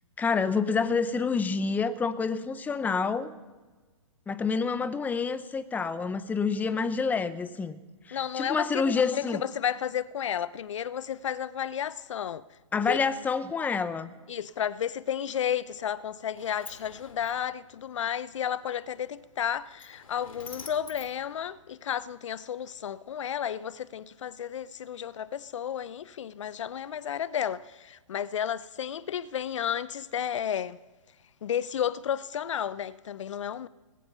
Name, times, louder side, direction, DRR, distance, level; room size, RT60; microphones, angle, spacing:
voice 1, 0.2-3.3 4.3-7.8 8.1-9.4 12.7-14.1, left 5 dB, 10° left, 1.0 m, -28 dB
voice 2, 8.1-12.4 12.9-13.0 14.3-30.8 31.4-33.7, left 9 dB, 65° left, 0.8 m, -32 dB
Sliding door, 15.7-22.1, left 4 dB, 85° left, 2.5 m, -50 dB
24.5 x 20.0 x 5.6 m
hypercardioid pair, 130°, 17 cm